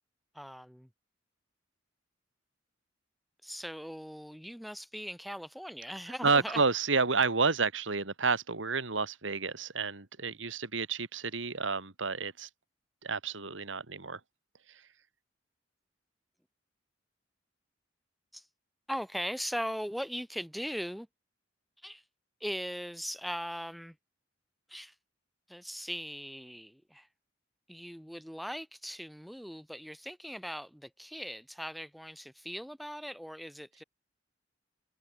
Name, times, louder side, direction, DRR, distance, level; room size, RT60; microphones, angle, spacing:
voice 1, 0.3-0.9 3.4-6.6 18.3-18.5 18.9-21.1 21.8-22.0 22.4-24.0 24.7-24.9 25.5-27.1 27.7-33.8, equal, ahead, 6.2 m, -39 dB
voice 2, 6.2-12.5 13.0-14.2 14.7-14.8, right 4 dB, 80° right, 2.0 m, -30 dB
head